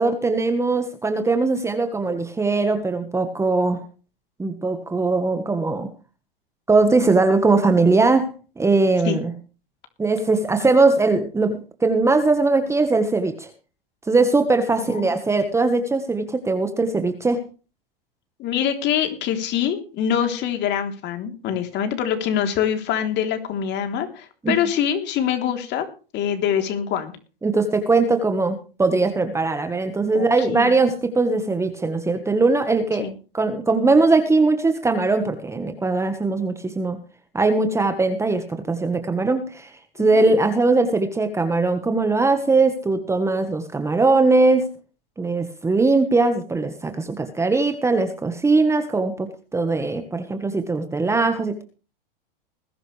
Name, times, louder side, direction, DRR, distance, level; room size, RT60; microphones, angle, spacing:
voice 1, 0.0-3.8 4.4-5.9 6.7-9.3 10.0-13.5 14.1-17.4 24.4-24.5 27.4-33.0 33.3-37.0 37.3-39.7 40.0-44.7 45.2-51.6, right 3 dB, 10° right, 8 dB, 1.5 m, -20 dB
voice 2, 14.8-15.1 18.4-25.9 26.1-27.1 30.1-30.7 33.0-33.1 40.0-40.4, left 9 dB, 40° left, 6 dB, 3.6 m, -24 dB
20.5 x 11.0 x 3.4 m, 0.35 s
hypercardioid pair, 120°, 29 cm